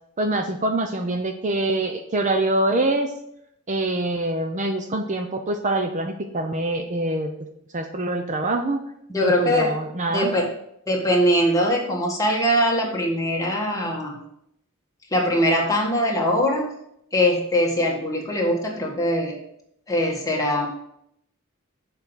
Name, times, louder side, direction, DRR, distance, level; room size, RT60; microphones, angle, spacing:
voice 1, 0.2-3.1 3.7-7.3 7.7-8.8 9.2-10.3, right 2 dB, 35° right, 5 dB, 0.6 m, -24 dB
voice 2, 9.1-9.7 10.1-10.5 10.9-14.2 15.1-16.7 17.1-19.4 19.9-20.7, equal, 15° left, -2 dB, 1.7 m, -22 dB
7.2 x 5.2 x 6.1 m, 0.75 s
head